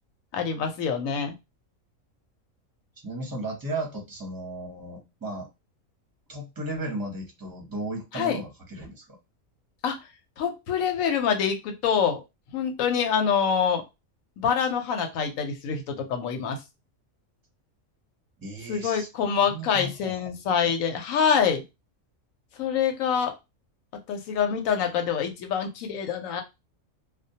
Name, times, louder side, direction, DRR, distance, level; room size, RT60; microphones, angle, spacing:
voice 1, 0.3-1.3 8.1-8.4 9.8-10.0 10.4-12.2 12.5-13.8 14.4-16.6 18.7-21.6 22.6-23.3 24.1-26.4, left 7 dB, 80° left, 5 dB, 1.0 m, -25 dB
voice 2, 3.0-5.5 6.3-9.2 18.4-20.7, right 1 dB, 20° right, 0 dB, 0.6 m, -35 dB
2.2 x 2.2 x 2.7 m, 0.24 s
omnidirectional pair, 1.4 m